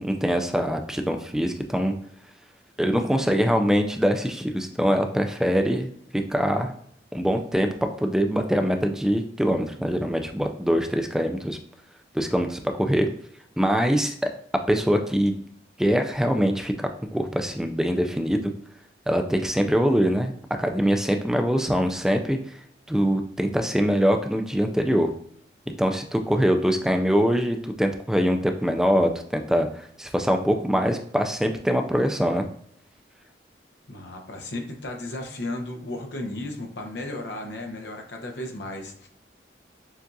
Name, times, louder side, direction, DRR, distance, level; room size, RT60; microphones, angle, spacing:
voice 1, 0.0-1.9 2.8-6.7 7.1-11.6 12.1-13.1 13.6-14.3 14.7-15.3 15.8-18.5 19.1-20.3 20.6-22.4 22.9-25.1 25.8-32.4, equal, 5° right, 5 dB, 0.3 m, -23 dB
voice 2, 33.9-39.1, left 1 dB, 85° left, 2 dB, 0.9 m, -34 dB
7.1 x 2.4 x 2.6 m, 0.67 s
head